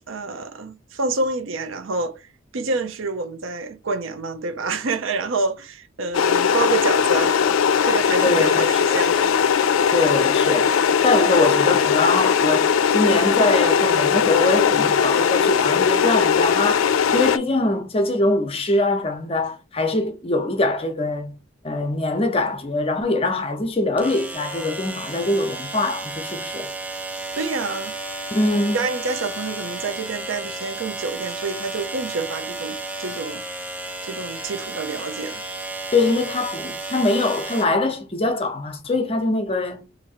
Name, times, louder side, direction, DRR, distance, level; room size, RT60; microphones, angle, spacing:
voice 1, 0.1-7.4 7.8-9.4 27.3-27.9 28.7-33.4 34.0-35.4, right 3 dB, 85° right, 0.6 m, -28 dB
sound 1, 6.1-17.4, left 7 dB, 85° left, 0.4 m, -19 dB
voice 2, 8.2-8.6 9.9-10.7 11.0-16.8 17.1-21.4 21.6-26.7 28.3-28.8 35.9-39.9, left 2 dB, 30° left, 0.6 m, -23 dB
sound 2, 21.9-22.0 24.0-37.7, right 2 dB, 5° right, 0.4 m, -33 dB
2.9 x 2.7 x 4.2 m
head